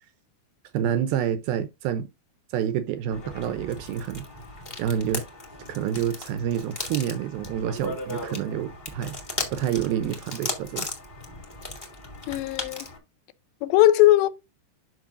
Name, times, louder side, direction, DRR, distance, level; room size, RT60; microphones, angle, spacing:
voice 1, 0.7-2.1 2.5-4.3 4.8-5.2 5.7-9.2 9.5-10.9, right 9 dB, 90° right, 2.1 m, -28 dB
sound 1, 3.1-13.0, left 2 dB, 20° left, 1.2 m, -37 dB
voice 2, 12.3-12.9 13.6-14.3, left 14 dB, 80° left, 2.9 m, -19 dB
11.0 x 6.1 x 2.5 m
omnidirectional pair, 5.2 m